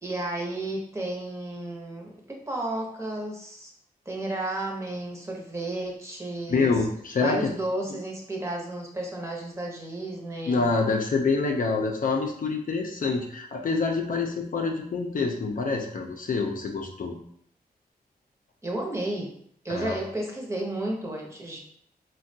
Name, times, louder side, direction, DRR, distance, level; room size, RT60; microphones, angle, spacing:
voice 1, 0.0-3.7 4.1-6.7 7.2-10.7 18.6-19.3 19.6-21.6, right 1 dB, 15° right, -1 dB, 0.8 m, -32 dB
voice 2, 6.5-7.5 7.9-8.0 10.5-17.2 19.7-20.0, left 4 dB, 55° left, 2 dB, 0.5 m, -26 dB
3.4 x 2.2 x 2.6 m, 0.65 s
cardioid pair, 65°, 16 cm